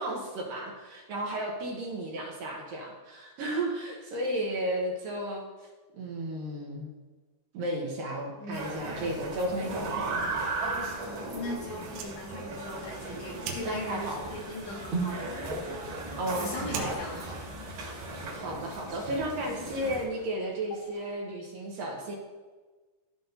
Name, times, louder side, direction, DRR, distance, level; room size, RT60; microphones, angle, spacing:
voice 1, 0.0-5.4 5.9-6.9 7.5-10.7 13.7-14.3 16.0-17.3 18.4-22.1, right 1 dB, 70° right, -1 dB, 2.3 m, -34 dB
sound 1, 8.5-20.1, right 2 dB, 50° right, 2.7 m, -37 dB
voice 2, 11.3-15.3 16.4-17.2, left 1 dB, 75° left, -5 dB, 3.5 m, -39 dB
Fire, 11.7-18.6, right 6 dB, 85° right, 3.2 m, -46 dB
sound 2, 13.2-21.1, right 4 dB, 35° right, 1.2 m, -42 dB
14.5 x 5.5 x 2.7 m, 1.3 s
omnidirectional pair, 4.9 m